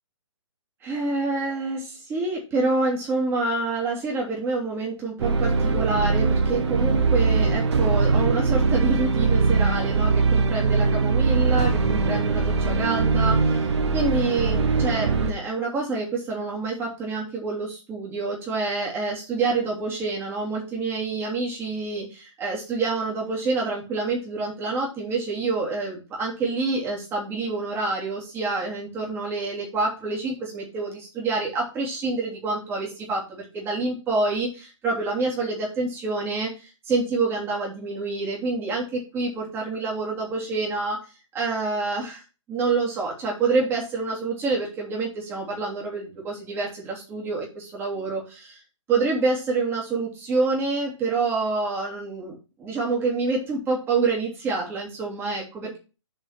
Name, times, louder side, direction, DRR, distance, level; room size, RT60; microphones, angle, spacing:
voice 1, 0.8-41.0 41.3-42.2 42.5-48.6 48.9-55.8, right 3 dB, 15° right, -3 dB, 3.1 m, -27 dB
sound 1, 5.2-15.3, right 4 dB, 65° right, 1.5 m, -21 dB
7.4 x 4.9 x 5.8 m, 0.32 s
hypercardioid pair, 150°, 16 cm